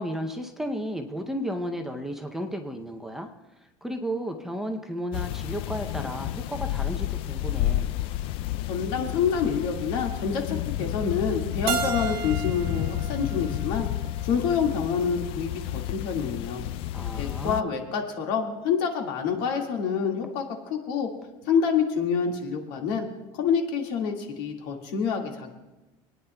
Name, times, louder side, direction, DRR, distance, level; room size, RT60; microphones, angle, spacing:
voice 1, 0.0-3.3 3.8-7.9 16.9-17.8, equal, 5° right, 3 dB, 0.6 m, -33 dB
sound 1, 5.1-17.6, left 13 dB, 50° left, 0.3 m, -31 dB
voice 2, 8.6-13.9 14.2-16.6 17.2-20.4 20.7-21.1 21.5-23.1 23.4-25.5, left 6 dB, 75° left, 2 dB, 1.9 m, -27 dB
Keyboard (musical), 11.7-14.5, right 5 dB, 50° right, 0.8 m, -33 dB
27.0 x 9.7 x 2.3 m, 1.0 s
cardioid pair, 160°, 12 cm